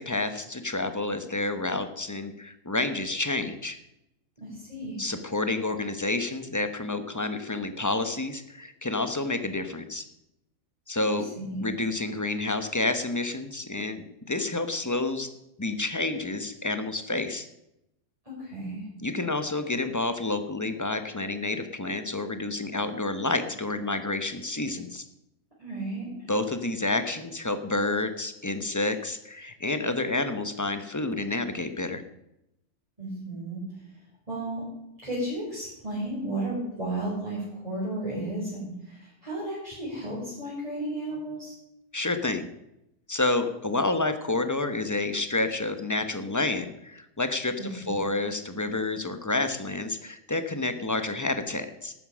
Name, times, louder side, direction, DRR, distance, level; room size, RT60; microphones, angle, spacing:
voice 1, 0.0-3.8 5.0-10.0 10.9-11.3 11.6-15.3 15.6-17.5 19.0-25.0 26.3-32.0 41.9-42.5 43.1-51.9, left 2 dB, 15° left, 9 dB, 0.8 m, -29 dB
voice 2, 4.4-5.0 11.4-11.6 18.2-18.9 25.6-26.3 33.0-33.6 34.3-34.6 35.0-41.5 47.6-48.1, right 1 dB, 20° right, -9 dB, 5.2 m, -33 dB
12.5 x 9.2 x 6.3 m, 0.85 s
omnidirectional pair, 1.7 m